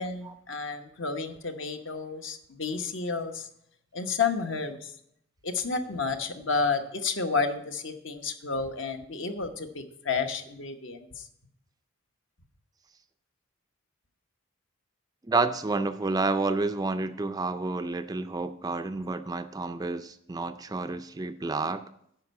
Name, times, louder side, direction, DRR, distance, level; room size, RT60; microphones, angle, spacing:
voice 1, 0.0-3.5 3.9-4.9 5.4-11.0, left 4 dB, 60° left, 7 dB, 1.0 m, -31 dB
voice 2, 15.3-21.8, right 3 dB, 20° right, 9 dB, 0.4 m, -29 dB
9.6 x 5.5 x 8.1 m, 0.72 s
head